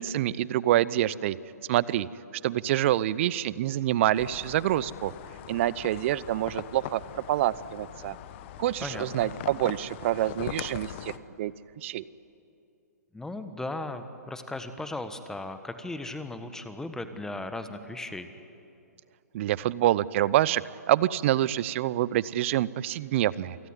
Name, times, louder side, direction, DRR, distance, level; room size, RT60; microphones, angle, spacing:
voice 1, 0.0-1.4 1.7-2.1 2.4-5.1 5.5-8.2 8.6-11.1 11.4-12.0 19.3-20.6 20.9-23.6, right 13 dB, 45° right, 20 dB, 0.7 m, -26 dB
sound 1, 4.1-11.2, left 12 dB, 40° left, 1.2 m, -41 dB
voice 2, 8.8-9.3 13.1-18.3, left 2 dB, 5° left, 9 dB, 1.4 m, -37 dB
27.5 x 18.5 x 9.8 m, 2.6 s
hypercardioid pair, 130°, 9 cm